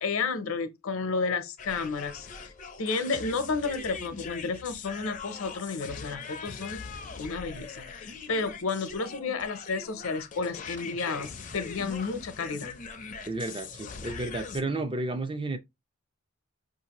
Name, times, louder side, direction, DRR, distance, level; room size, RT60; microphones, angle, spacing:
voice 1, 0.0-2.5 2.8-6.9 7.2-12.8, left 4 dB, 70° left, 0.7 m, -32 dB
sound 1, 1.6-14.6, left 5 dB, 35° left, 0.5 m, -41 dB
voice 2, 13.3-15.6, right 2 dB, 20° right, 0.4 m, -32 dB
5.6 x 2.6 x 2.9 m
head